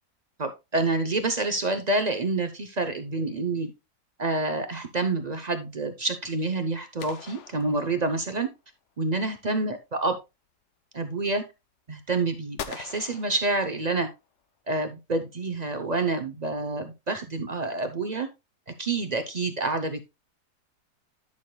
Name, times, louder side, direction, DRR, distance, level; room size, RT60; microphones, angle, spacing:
voice 1, 0.4-3.7 4.2-8.5 9.0-10.1 10.9-11.4 11.9-14.1 14.7-18.3 18.8-20.1, right 3 dB, 55° right, 8 dB, 0.4 m, -28 dB
sound 1, 7.0-8.5 12.6-14.2, left 8 dB, 60° left, 0.8 m, -42 dB
11.0 x 6.4 x 2.2 m, 0.25 s
omnidirectional pair, 1.8 m